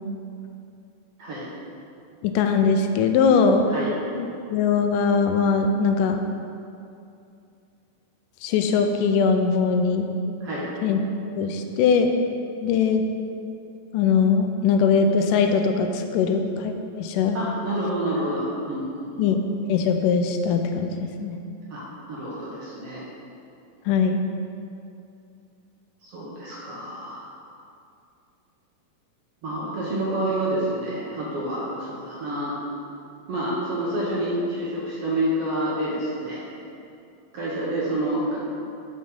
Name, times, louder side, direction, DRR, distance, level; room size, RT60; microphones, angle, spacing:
voice 1, 2.2-3.8 4.1-6.2 8.4-10.1 10.8-11.0 11.4-12.1 12.6-13.0 13.9-17.4 19.2-19.4 19.7-21.4 23.9-24.2, left 5 dB, 85° left, 5 dB, 2.1 m, -21 dB
voice 2, 17.3-19.1 21.7-23.0 26.0-27.3 29.4-32.6 33.3-36.4 37.3-38.4, right 1 dB, 60° right, -6 dB, 1.7 m, -28 dB
7.0 x 5.2 x 5.3 m, 2.6 s
omnidirectional pair, 3.7 m